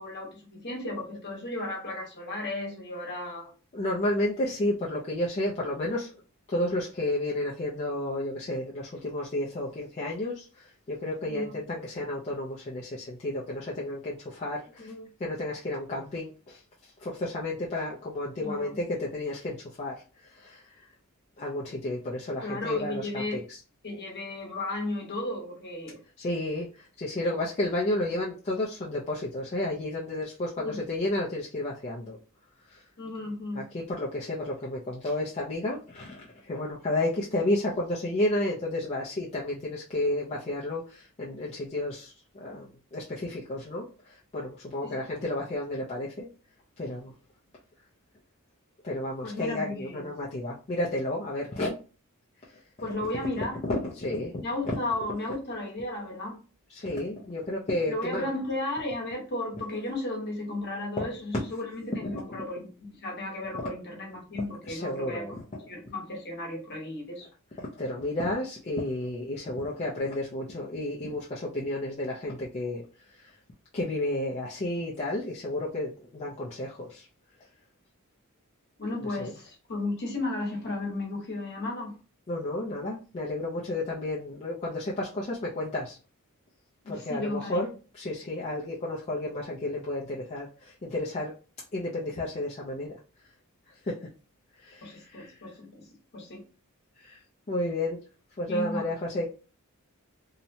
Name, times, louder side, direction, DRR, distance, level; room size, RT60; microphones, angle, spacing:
voice 1, 0.0-3.5 11.3-11.6 14.8-15.1 18.4-18.8 22.4-23.4 23.8-26.0 30.6-30.8 33.0-33.7 44.8-45.0 49.2-50.1 52.8-53.6 54.4-56.4 57.9-65.4 65.7-67.3 78.8-82.0 86.8-87.7 94.8-95.9 96.1-96.5 98.5-98.9, left 2 dB, 50° left, 1.0 m, -34 dB
voice 2, 3.7-6.1 6.5-14.9 15.2-16.6 17.0-20.0 20.4-20.6 21.4-23.6 26.2-32.2 32.7-32.8 33.5-42.1 42.4-46.3 46.8-47.1 48.8-51.7 53.6-54.8 56.7-58.3 62.0-62.2 64.7-65.4 67.6-72.8 73.7-77.1 79.2-79.3 82.3-86.0 86.9-87.7 87.9-91.3 91.7-92.9 93.8-93.9 94.6-95.3 97.0-97.2 97.5-98.0 98.4-99.2, left 1 dB, 30° left, 0.4 m, -32 dB
2.8 x 2.1 x 2.7 m
head